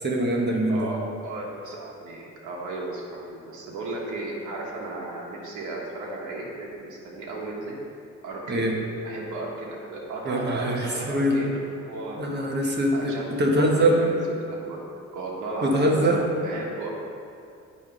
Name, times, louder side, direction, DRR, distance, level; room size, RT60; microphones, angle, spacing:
voice 1, 0.0-0.9 8.5-8.7 10.2-11.3 12.2-13.1 13.4-14.0 15.6-16.2, right 1 dB, 35° right, 0 dB, 1.3 m, -23 dB
voice 2, 0.7-7.8 8.2-8.7 9.0-12.2 12.9-13.3 13.6-14.8 15.1-16.9, right 2 dB, 85° right, -3 dB, 1.3 m, -35 dB
9.9 x 3.3 x 5.3 m, 2.5 s
cardioid pair, 90°, 30 cm